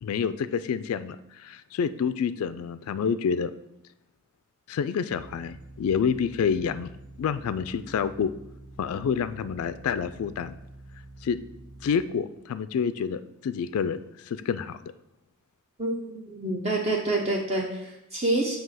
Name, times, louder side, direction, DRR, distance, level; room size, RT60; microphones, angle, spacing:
voice 1, 0.0-3.5 4.7-6.9 7.2-8.3 8.8-10.5 11.2-11.4 11.8-14.0 14.3-14.8, left 6 dB, 85° left, 13 dB, 0.3 m, -28 dB
sound 1, 5.1-11.9, right 2 dB, 90° right, 1.0 m, -47 dB
voice 2, 15.8-18.6, right 2 dB, 30° right, -1 dB, 0.7 m, -27 dB
7.4 x 2.9 x 5.6 m, 0.84 s
head